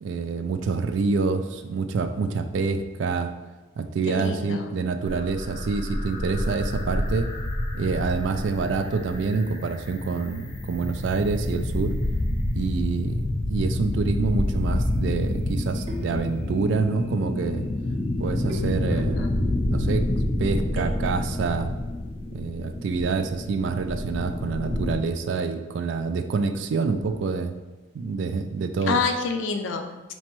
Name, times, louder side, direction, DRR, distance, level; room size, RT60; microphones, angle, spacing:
voice 1, 0.0-3.3 3.8-7.3 7.7-12.0 12.5-13.2 13.5-17.7 18.2-19.3 19.7-20.1 20.4-21.7 22.3-27.6 27.9-29.0, right 4 dB, 70° right, 9 dB, 0.3 m, -27 dB
voice 2, 4.1-4.8 19.1-19.4 28.9-30.1, left 5 dB, 85° left, 6 dB, 0.4 m, -28 dB
sound 1, 5.0-25.0, left 1 dB, 30° left, 0.5 m, -28 dB
sound 2, 15.9-16.8 18.5-19.4 20.7-21.5, right 1 dB, 30° right, 0.7 m, -42 dB
4.4 x 2.9 x 3.0 m, 1.2 s
head